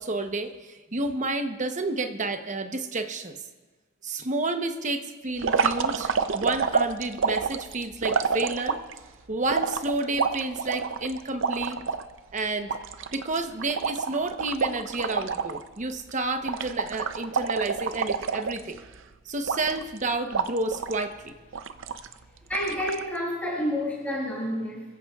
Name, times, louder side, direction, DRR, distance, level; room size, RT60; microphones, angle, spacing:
voice 1, 0.0-3.4 4.0-8.8 9.3-11.8 12.3-12.8 13.1-18.8 19.3-21.3, right 2 dB, 40° right, 7 dB, 0.9 m, -30 dB
sound 1, 5.4-9.0 9.5-12.0 12.4-12.5 12.7-15.6 15.9-16.1 16.5-19.0 19.5-20.0 20.3-21.0 21.5-22.1 22.5-23.0, right 5 dB, 65° right, 0.6 m, -28 dB
voice 2, 22.5-24.8, left 1 dB, 5° left, -6 dB, 5.9 m, -29 dB
27.0 x 15.0 x 2.4 m, 1.3 s
head